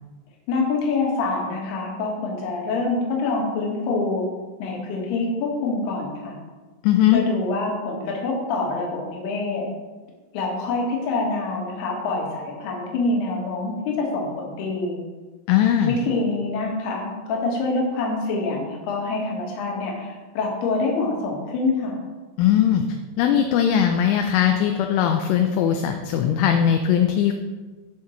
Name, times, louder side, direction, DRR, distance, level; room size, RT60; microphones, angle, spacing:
voice 1, 0.5-4.2 4.6-6.4 7.1-9.7 10.3-15.0 15.9-22.0, left 3 dB, 60° left, -2 dB, 3.2 m, -26 dB
voice 2, 6.8-7.2 15.5-16.0 22.4-22.8 23.2-27.3, left 9 dB, 80° left, 4 dB, 2.9 m, -19 dB
15.5 x 5.6 x 3.2 m, 1.3 s
omnidirectional pair, 5.9 m